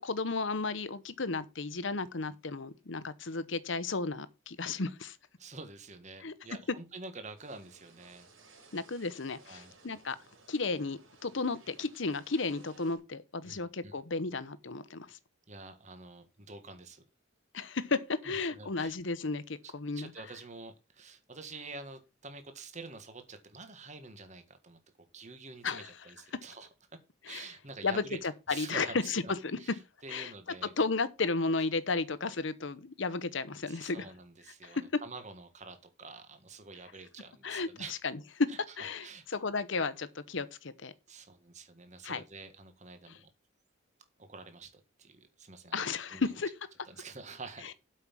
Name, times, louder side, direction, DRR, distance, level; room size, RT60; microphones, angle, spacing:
voice 1, 0.0-5.2 6.2-6.3 8.7-10.2 10.5-15.2 17.5-20.1 25.6-25.9 27.3-27.5 27.8-28.0 28.5-29.6 30.1-30.3 30.8-34.0 34.6-34.8 37.4-38.2 38.8-40.9 42.0-42.2 45.7-46.5, left 4 dB, 65° left, 0.9 m, -33 dB
voice 2, 5.4-8.3 9.5-9.7 13.4-14.0 15.5-17.0 18.2-19.0 19.9-26.7 27.3-28.2 28.5-29.3 29.6-30.7 33.7-37.9 38.5-39.2 41.1-43.3 44.3-46.3 46.9-47.7, right 3 dB, 35° right, 1.6 m, -48 dB
sound 1, 7.4-13.0, right 3 dB, 85° right, 4.5 m, -59 dB
8.3 x 5.6 x 7.3 m
head